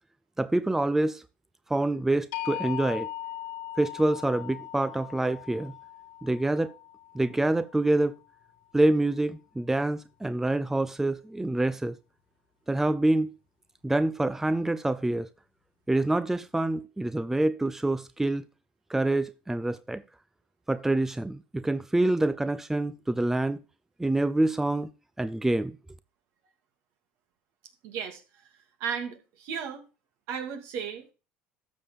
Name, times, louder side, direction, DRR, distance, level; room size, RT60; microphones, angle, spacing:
voice 1, 0.4-1.2 1.7-3.1 3.8-5.7 6.2-6.7 7.1-8.1 8.7-12.0 12.7-13.3 13.8-15.3 15.9-18.4 18.9-20.0 20.7-23.6 24.0-24.9 25.2-25.8, right 2 dB, 10° right, 0.6 m, -26 dB
sound 1, 2.3-8.3, left 12 dB, 85° left, 1.4 m, -39 dB
voice 2, 27.8-28.2 28.8-29.8 30.3-31.1, right 7 dB, 70° right, 2.4 m, -34 dB
12.5 x 6.8 x 3.6 m
supercardioid pair, 85°, 5 cm